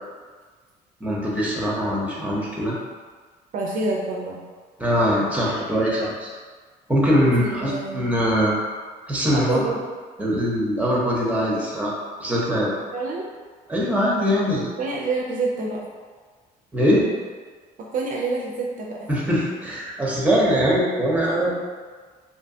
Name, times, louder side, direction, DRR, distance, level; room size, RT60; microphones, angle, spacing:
voice 1, 1.0-2.7 4.8-6.3 6.9-8.6 9.1-9.7 10.2-12.7 13.7-14.7 16.7-17.0 19.1-21.7, equal, 10° right, -4 dB, 0.6 m, -22 dB
voice 2, 3.5-4.4 7.2-8.2 9.2-9.8 12.9-13.3 14.8-15.9 17.8-19.1, right 3 dB, 50° right, -2 dB, 0.4 m, -27 dB
2.7 x 2.2 x 2.6 m, 1.5 s
cardioid pair, 110°, 17 cm